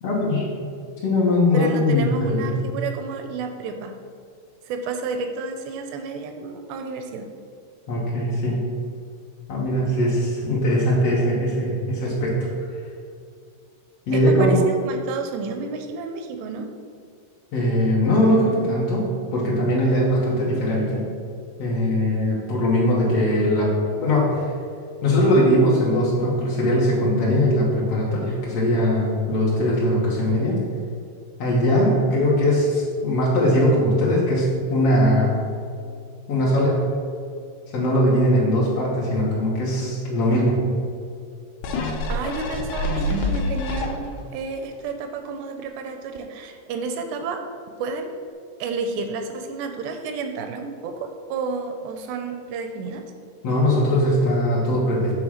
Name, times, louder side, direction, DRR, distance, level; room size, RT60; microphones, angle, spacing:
voice 1, 0.0-0.5 1.0-2.6 7.9-8.6 9.5-12.5 14.1-14.6 17.5-21.0 21.6-23.7 24.0-24.5 25.0-30.6 31.4-35.4 36.3-36.9 37.7-40.6 53.4-55.1, left 1 dB, 90° left, -6 dB, 1.3 m, -20 dB
voice 2, 1.5-4.0 4.6-7.3 14.1-16.7 42.1-47.4 47.8-48.2 48.6-53.1, right 4 dB, 80° right, 6 dB, 2.5 m, -31 dB
sound 1, 41.6-44.3 44.8-44.9, left 1 dB, 75° left, 2.6 m, -26 dB
9.1 x 3.7 x 6.4 m, 2.3 s
omnidirectional pair, 5.2 m